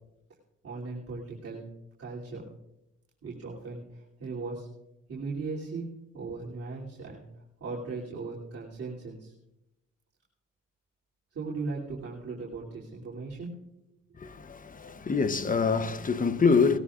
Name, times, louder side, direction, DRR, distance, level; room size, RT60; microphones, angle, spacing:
voice 1, 0.6-1.7 2.0-2.4 3.2-4.7 5.1-7.2 7.6-9.3 11.3-13.5, right 4 dB, 50° right, 3.0 m, -38 dB
voice 2, 14.2-16.8, left 5 dB, 30° left, 0.8 m, -25 dB
19.0 x 14.0 x 2.5 m
cardioid pair, 90°, 30 cm